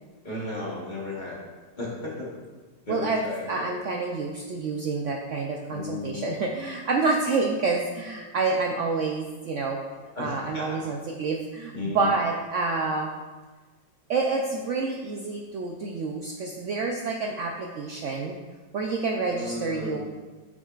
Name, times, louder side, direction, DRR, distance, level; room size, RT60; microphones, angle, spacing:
voice 1, 0.2-1.4 1.8-2.3 2.8-3.7 5.7-6.3 10.1-10.8 11.7-12.1 19.2-20.0, left 2 dB, 30° left, -4 dB, 1.3 m, -34 dB
voice 2, 2.9-3.2 3.5-9.8 10.2-13.1 14.1-18.3 18.7-20.0, right 3 dB, 85° right, 1 dB, 0.6 m, -28 dB
9.0 x 6.1 x 2.4 m, 1.3 s
omnidirectional pair, 1.9 m